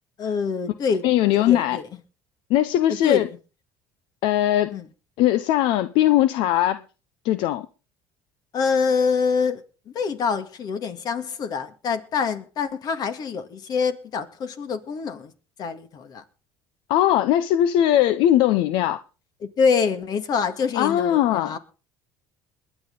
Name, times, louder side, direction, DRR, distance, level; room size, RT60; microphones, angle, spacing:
voice 1, 0.2-1.9 3.0-3.2 4.7-4.8 8.5-9.6 9.9-15.3 15.6-16.2 19.4-21.6, left 5 dB, 50° left, 2.1 m, -25 dB
voice 2, 1.0-1.8 2.5-3.3 4.2-4.8 5.2-6.8 7.2-7.7 16.9-19.0 20.8-21.6, left 12 dB, 75° left, 0.8 m, -20 dB
21.5 x 9.1 x 3.9 m
cardioid pair, 110°, 9 cm